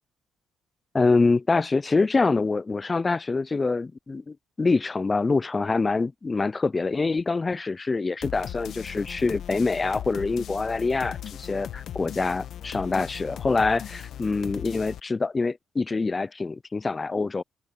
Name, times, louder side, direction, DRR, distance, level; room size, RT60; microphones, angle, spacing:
voice 1, 0.9-17.4, left 3 dB, 25° left, 0.4 m, -25 dB
sound 1, 8.2-15.0, left 10 dB, 70° left, 1.4 m, -38 dB
open air
cardioid pair, 90°, 0 cm